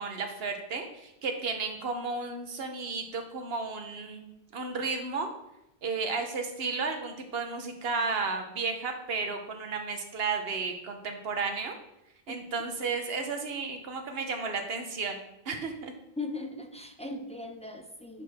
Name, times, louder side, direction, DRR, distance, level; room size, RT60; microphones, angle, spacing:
voice 1, 0.0-5.3 5.8-11.8 12.3-15.2 15.5-15.9, right 4 dB, 70° right, 5 dB, 1.2 m, -33 dB
voice 2, 16.2-18.2, left 2 dB, 10° left, 4 dB, 0.4 m, -38 dB
10.5 x 4.7 x 3.5 m, 0.85 s
omnidirectional pair, 1.1 m